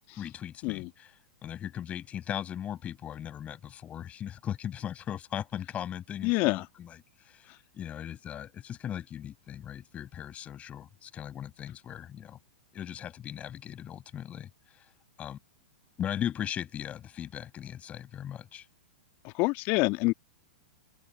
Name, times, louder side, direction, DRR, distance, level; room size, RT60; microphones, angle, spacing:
voice 1, 0.2-1.1 1.4-12.4 12.7-14.9 15.2-15.4 16.0-18.7, left 10 dB, 25° left, 8.0 m, -38 dB
voice 2, 6.2-6.7 19.2-20.1, left 25 dB, 40° left, 1.9 m, -27 dB
open air
figure-of-eight pair, 105°, 5 cm